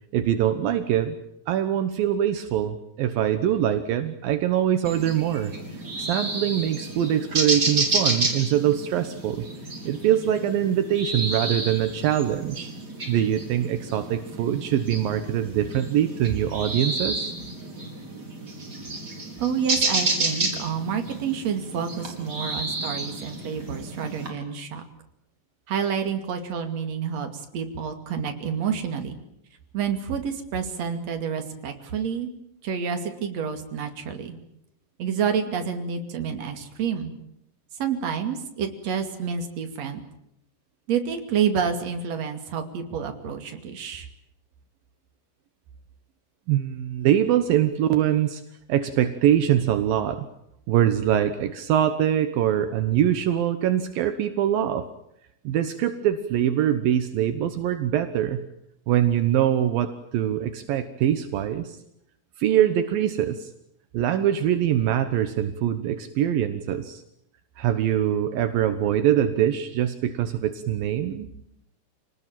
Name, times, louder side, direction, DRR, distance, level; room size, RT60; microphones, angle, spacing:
voice 1, 0.1-1.2 1.5-9.5 9.8-12.7 13.1-17.3 46.5-48.4 48.7-50.3 50.7-54.9 55.4-58.4 58.9-61.8 62.4-63.5 63.9-67.0 67.6-71.3, right 10 dB, 75° right, 9 dB, 2.9 m, -23 dB
sound 1, 4.8-24.3, right 2 dB, 25° right, 4.9 m, -30 dB
voice 2, 19.4-24.8 25.7-29.2 29.7-32.3 32.6-34.4 35.0-37.1 37.8-40.0 40.9-44.1, right 7 dB, 50° right, 6 dB, 3.4 m, -29 dB
27.5 x 19.0 x 9.1 m, 0.79 s
omnidirectional pair, 4.2 m